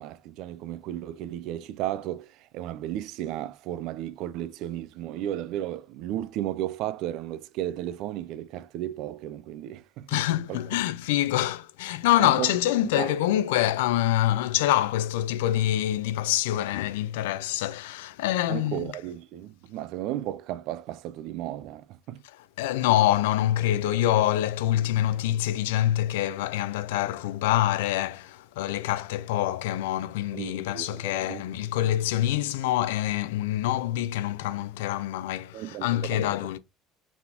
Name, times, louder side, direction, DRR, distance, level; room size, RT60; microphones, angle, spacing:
voice 1, 0.0-10.2 10.5-10.6 11.4-11.5 12.2-12.6 12.9-13.1 18.5-22.2 30.3-31.4 35.5-36.3, right 13 dB, 70° right, 0.4 m, -34 dB
voice 2, 10.1-18.9 22.6-36.6, left 13 dB, 90° left, 0.4 m, -26 dB
4.1 x 3.4 x 2.8 m
supercardioid pair, 90°, 0 cm